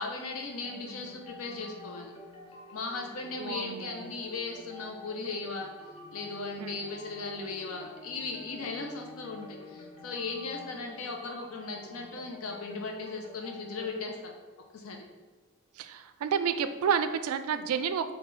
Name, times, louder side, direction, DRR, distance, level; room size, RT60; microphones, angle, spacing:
voice 1, 0.0-2.1 2.7-5.7 6.1-14.3 14.7-15.0, left 3 dB, 80° left, 1 dB, 0.6 m, -37 dB
sound 1, 0.6-15.1, left 2 dB, 30° left, 0.6 m, -49 dB
voice 2, 3.4-4.1 6.6-6.8 15.8-18.1, right 7 dB, 85° right, 10 dB, 0.3 m, -30 dB
5.5 x 2.3 x 3.9 m, 1.3 s
head